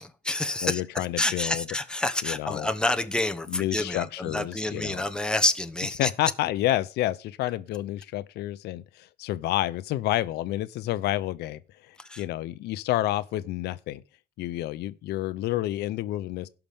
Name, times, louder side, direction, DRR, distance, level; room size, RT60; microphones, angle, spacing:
voice 1, 0.0-6.1 12.0-12.2, left 2 dB, 5° left, 1.0 m, -28 dB
voice 2, 0.6-1.6 2.2-2.7 3.5-5.0 6.0-14.0 14.4-16.5, left 15 dB, 80° left, 0.6 m, -29 dB
17.5 x 5.9 x 3.5 m
cardioid pair, 110°, 17 cm